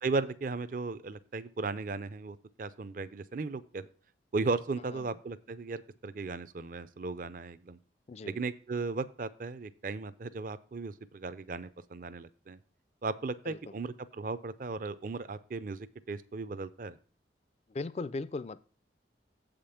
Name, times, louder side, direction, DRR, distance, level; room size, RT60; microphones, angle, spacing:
voice 1, 0.0-3.9 4.3-7.8 8.3-12.6 13.0-17.0, right 3 dB, 45° right, 0.5 m, -36 dB
voice 2, 8.1-8.4 13.5-13.7 17.7-18.6, left 3 dB, 35° left, 0.3 m, -38 dB
7.7 x 5.2 x 5.7 m
head